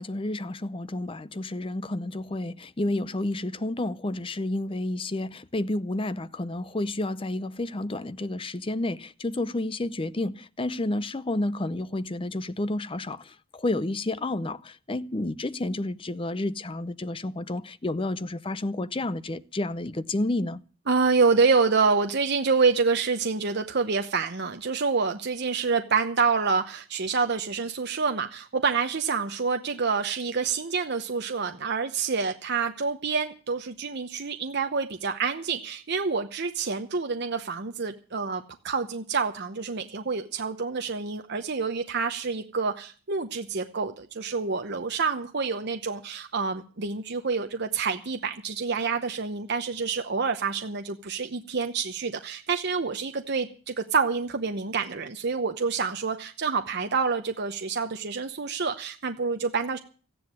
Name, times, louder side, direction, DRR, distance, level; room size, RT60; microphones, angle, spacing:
voice 1, 0.0-20.6, left 2 dB, 25° left, 0.6 m, -30 dB
voice 2, 20.9-59.8, right 5 dB, 50° right, 0.9 m, -27 dB
14.0 x 10.5 x 7.5 m
head